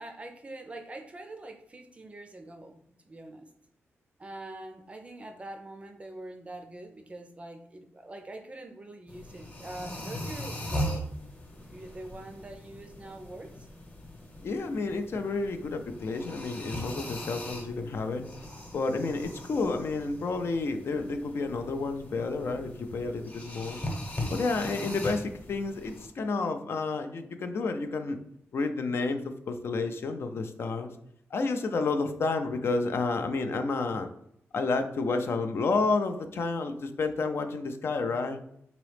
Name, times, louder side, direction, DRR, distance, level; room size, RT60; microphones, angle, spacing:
voice 1, 0.0-3.5 4.2-11.0 11.7-13.7, right 2 dB, 25° right, 5 dB, 0.4 m, -44 dB
sound 1, 9.1-26.1, left 1 dB, 30° left, 0.9 m, -39 dB
voice 2, 14.4-18.3 18.7-23.8 24.3-28.2 28.5-30.9 31.3-34.1 34.5-38.4, left 3 dB, 60° left, 7 dB, 0.4 m, -30 dB
3.8 x 3.0 x 3.2 m, 0.72 s
wide cardioid pair, 125°, 5 cm